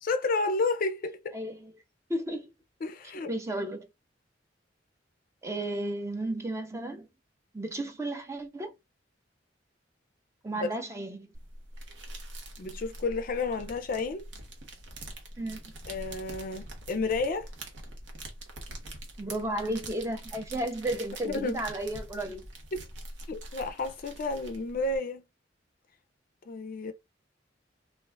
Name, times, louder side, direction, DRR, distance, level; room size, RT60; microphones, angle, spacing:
voice 1, 0.0-1.4 2.8-3.3 10.5-10.7 12.6-14.3 15.9-17.5 21.2-21.6 23.3-25.2 26.5-26.9, left 3 dB, 50° left, 0.4 m, -31 dB
voice 2, 1.3-1.7 2.1-2.5 3.3-3.9 5.4-7.1 7.5-8.7 10.4-11.3 15.4-15.6 19.2-22.4, right 1 dB, 15° right, 0.5 m, -33 dB
sound 1, 11.3-25.0, right 1 dB, 70° right, 0.9 m, -44 dB
2.5 x 2.3 x 3.2 m
head